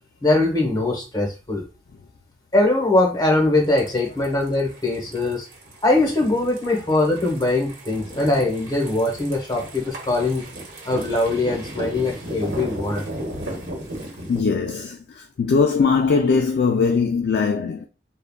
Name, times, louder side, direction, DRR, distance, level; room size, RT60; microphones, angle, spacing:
voice 1, 0.2-1.6 2.5-5.5 5.8-10.4 10.8-13.0, left 2 dB, 20° left, 0.8 m, -21 dB
sound 1, 3.6-14.4, right 1 dB, 85° right, 1.0 m, -35 dB
voice 2, 14.3-17.9, left 5 dB, 60° left, 0.3 m, -20 dB
3.4 x 2.1 x 2.2 m
head